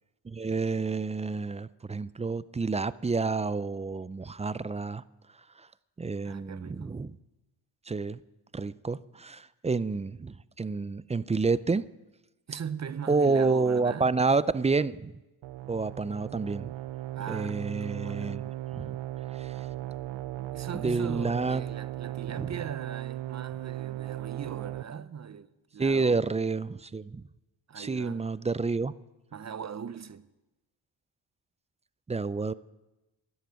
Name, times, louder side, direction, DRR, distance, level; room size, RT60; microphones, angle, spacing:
voice 1, 0.2-5.0 5.6-5.7 6.0-7.2 7.9-8.2 8.5-11.9 13.1-15.1 15.7-16.7 17.3-19.0 19.4-19.5 20.8-21.6 22.4-22.5 25.8-27.2 27.8-28.9 32.1-32.5, right 4 dB, 15° right, 0.4 m, -29 dB
voice 2, 6.2-6.9 12.5-14.2 17.1-18.5 20.5-26.2 27.7-28.3 29.3-30.3, right 7 dB, 35° right, 0.7 m, -40 dB
sound 1, 15.4-24.8, right 14 dB, 70° right, 0.6 m, -37 dB
11.5 x 11.0 x 7.4 m
cardioid pair, 60°, 46 cm